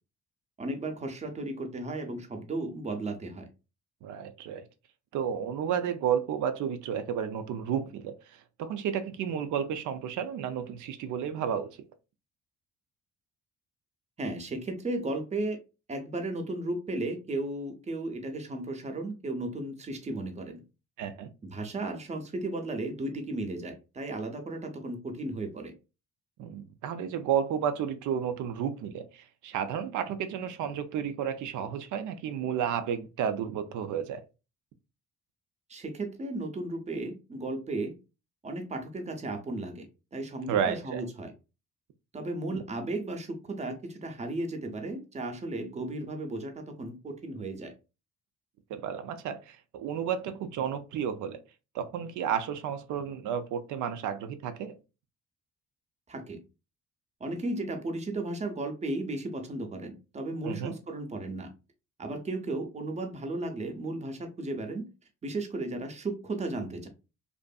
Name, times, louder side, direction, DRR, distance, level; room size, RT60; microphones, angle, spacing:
voice 1, 0.6-3.5 14.2-15.6 15.9-20.6 21.4-25.7 35.7-37.9 38.4-39.9 40.1-41.3 42.1-47.7 56.1-56.4 57.2-61.5 62.0-64.9 65.2-66.9, right 2 dB, 25° right, 0.6 m, -35 dB
voice 2, 4.0-4.7 5.1-11.7 21.0-21.3 26.4-34.2 40.5-41.0 48.7-51.4 51.7-54.8 60.4-60.8, right 8 dB, 75° right, 0.5 m, -32 dB
2.6 x 2.5 x 2.2 m
cardioid pair, 90°, 30 cm